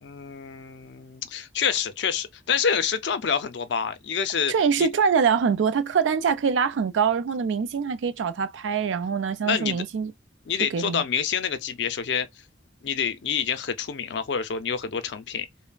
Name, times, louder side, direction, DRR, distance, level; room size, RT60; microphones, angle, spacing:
voice 1, 0.0-4.9 9.4-9.8 10.5-12.3 12.8-15.5, left 7 dB, 65° left, 0.4 m, -27 dB
voice 2, 4.5-10.1 10.7-11.0, right 6 dB, 80° right, 0.4 m, -24 dB
3.2 x 2.0 x 2.2 m
head